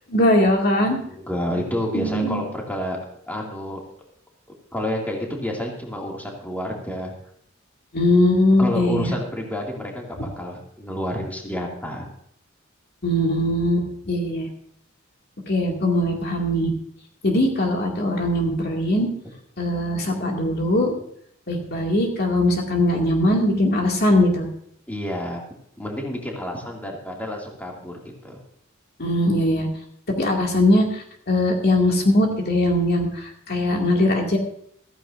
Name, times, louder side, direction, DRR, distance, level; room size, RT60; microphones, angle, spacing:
voice 1, 0.1-1.0 1.9-2.4 7.9-9.1 13.0-14.5 15.5-16.7 17.2-19.1 19.6-20.9 21.5-24.5 29.0-29.7 30.2-34.4, left 1 dB, 50° left, 0 dB, 2.4 m, -20 dB
voice 2, 1.1-3.0 3.3-3.8 4.7-7.1 8.6-12.1 24.9-25.4 25.8-27.9 28.2-28.4, left 1 dB, 10° left, -1 dB, 2.4 m, -29 dB
14.5 x 14.5 x 2.6 m, 0.67 s
head